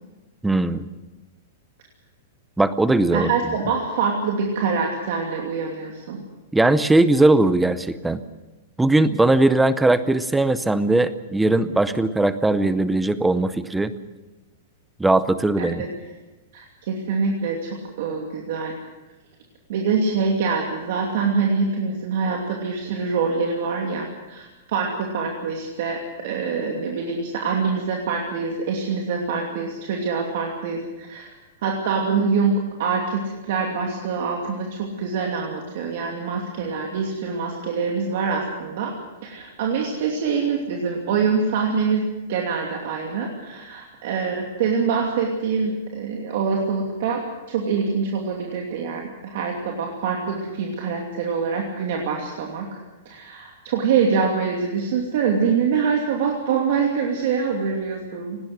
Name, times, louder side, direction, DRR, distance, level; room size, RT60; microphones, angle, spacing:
voice 1, 0.4-0.9 2.6-3.3 6.5-8.2 8.8-13.9 15.0-15.8, right 2 dB, 5° right, 13 dB, 0.6 m, -19 dB
voice 2, 3.1-6.2 15.6-15.9 16.5-17.7 18.0-18.7 19.7-31.3 31.6-38.9 39.2-42.0 42.3-47.2 47.5-52.7 53.0-58.4, right 5 dB, 45° right, 0 dB, 2.7 m, -25 dB
19.0 x 17.5 x 8.0 m, 1.1 s
supercardioid pair, 180°, 0 cm